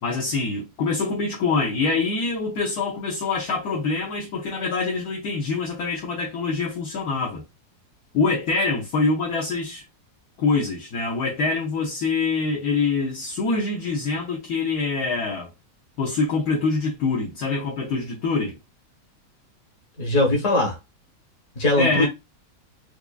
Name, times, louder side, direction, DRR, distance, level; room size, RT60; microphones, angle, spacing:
voice 1, 0.0-7.4 8.1-9.8 10.4-15.5 16.0-18.6 21.8-22.1, left 4 dB, 70° left, 1.3 m, -25 dB
voice 2, 20.0-20.8 21.6-22.1, left 2 dB, 50° left, 1.5 m, -20 dB
4.7 x 2.5 x 2.3 m
omnidirectional pair, 1.8 m